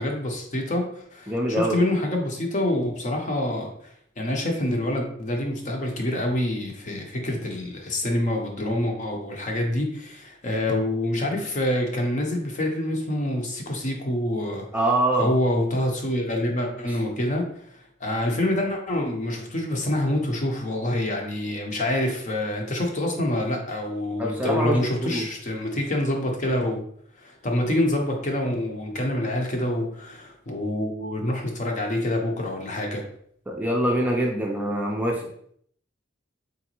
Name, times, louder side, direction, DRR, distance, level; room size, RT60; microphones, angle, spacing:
voice 1, 0.0-14.6 15.2-26.8 27.2-33.0, left 1 dB, 40° left, 2 dB, 0.8 m, -26 dB
voice 2, 1.3-1.8 14.7-15.3 24.2-25.3 33.5-35.3, right 1 dB, 10° right, -1 dB, 0.5 m, -24 dB
3.9 x 3.3 x 3.0 m, 0.64 s
head